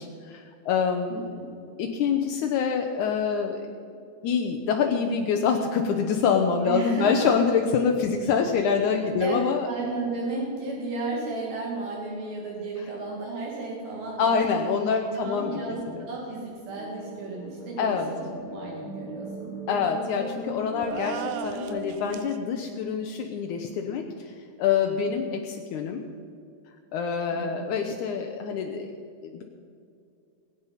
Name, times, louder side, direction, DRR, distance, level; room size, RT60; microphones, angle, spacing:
voice 1, 0.0-1.2 1.8-3.6 4.2-9.7 12.8-12.9 14.2-15.5 15.9-16.1 17.8-18.1 19.7-24.3 24.6-26.0 26.9-28.9 29.2-29.4, left 6 dB, 75° left, 3 dB, 1.8 m, -26 dB
voice 2, 1.1-1.5 6.7-7.4 8.7-8.9 9.2-9.3 9.6-14.4 15.2-19.5 27.3-27.7, right 3 dB, 70° right, -2 dB, 3.6 m, -33 dB
sound 1, 16.7-22.2, right 1 dB, 45° right, 5.2 m, -38 dB
sound 2, 20.8-22.4, right 9 dB, 90° right, 1.8 m, -36 dB
21.5 x 9.1 x 5.8 m, 2.5 s
omnidirectional pair, 4.5 m